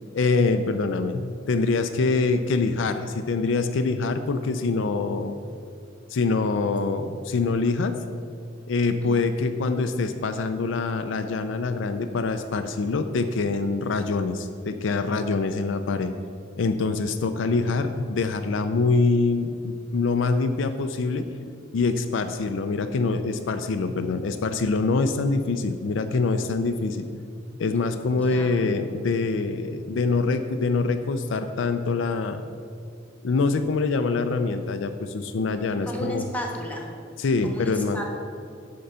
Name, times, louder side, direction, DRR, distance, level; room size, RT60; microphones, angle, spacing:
voice 1, 0.1-5.4 6.1-8.0 8.7-16.1 16.6-21.2 21.7-27.1 27.6-32.4 33.2-36.3 37.2-38.0, left 3 dB, 70° left, 8 dB, 0.4 m, -25 dB
voice 2, 28.1-28.6 35.8-36.9 37.4-38.0, equal, 10° left, 1 dB, 1.2 m, -35 dB
9.7 x 3.8 x 6.7 m, 2.3 s
head